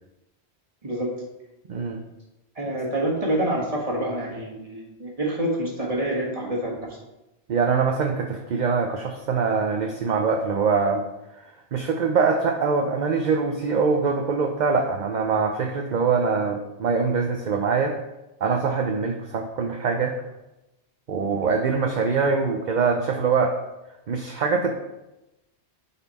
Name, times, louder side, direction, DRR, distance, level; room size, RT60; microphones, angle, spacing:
voice 1, 1.7-2.0 7.5-11.0 11.4-17.9 18.4-20.1 21.1-23.6 24.1-24.7, right 5 dB, 50° right, 3 dB, 0.6 m, -23 dB
voice 2, 2.5-7.0, right 1 dB, 30° right, -3 dB, 1.5 m, -27 dB
8.7 x 4.2 x 4.1 m, 0.96 s
omnidirectional pair, 1.2 m